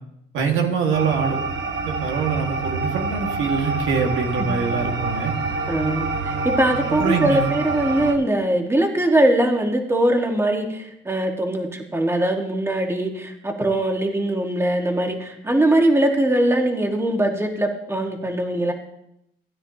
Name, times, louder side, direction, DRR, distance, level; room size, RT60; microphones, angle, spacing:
voice 1, 0.3-1.4 1.9-5.3 6.9-7.5, right 5 dB, 90° right, 1 dB, 1.8 m, -24 dB
sound 1, 0.9-8.1, right 3 dB, 65° right, 1.3 m, -27 dB
voice 2, 5.7-18.7, right 1 dB, 10° right, 3 dB, 1.6 m, -21 dB
16.0 x 9.5 x 2.9 m, 0.79 s
cardioid pair, 90°, 20 cm